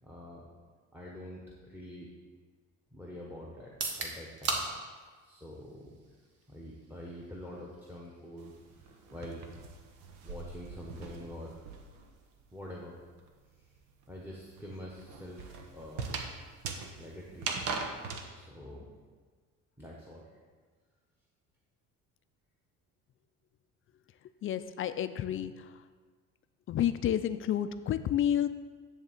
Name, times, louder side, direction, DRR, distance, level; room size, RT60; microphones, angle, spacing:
voice 1, 0.0-0.5 0.9-2.1 2.9-3.7 4.0-4.6 5.2-6.0 6.5-8.5 8.8-9.4 10.2-11.6 12.5-12.9 14.1-16.1 17.0-17.5 18.3-18.9 19.8-20.3, left 1 dB, 5° right, -2 dB, 1.2 m, -46 dB
sound 1, 3.6-17.5, right 3 dB, 50° right, 1.5 m, -45 dB
sound 2, 8.4-12.1 12.4-18.3, right 5 dB, 80° right, 1.1 m, -41 dB
voice 2, 24.4-25.5 26.7-28.5, left 10 dB, 40° left, 11 dB, 0.4 m, -30 dB
10.5 x 3.6 x 7.2 m, 1.5 s
cardioid pair, 115°, 33 cm